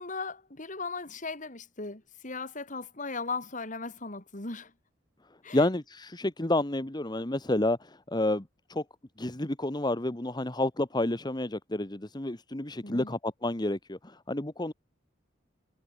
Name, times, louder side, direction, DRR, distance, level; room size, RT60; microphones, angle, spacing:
voice 1, 0.0-4.7 5.4-5.7 12.8-13.2, left 4 dB, 45° left, 3.2 m, -37 dB
voice 2, 5.5-8.4 8.7-8.8 9.2-14.7, left 1 dB, 25° left, 1.4 m, -30 dB
head